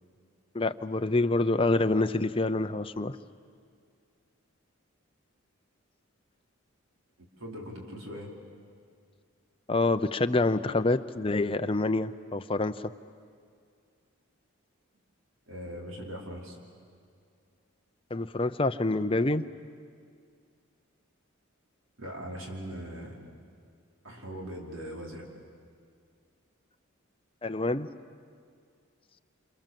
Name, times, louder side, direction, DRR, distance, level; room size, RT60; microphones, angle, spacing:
voice 1, 0.5-3.2 9.7-12.7 18.1-19.4 27.4-27.9, left 2 dB, 25° left, 9 dB, 0.6 m, -27 dB
voice 2, 7.2-8.3 15.5-16.6 22.0-23.2 24.0-25.2, equal, 70° right, -1 dB, 4.9 m, -40 dB
28.0 x 28.0 x 7.6 m, 2.2 s
head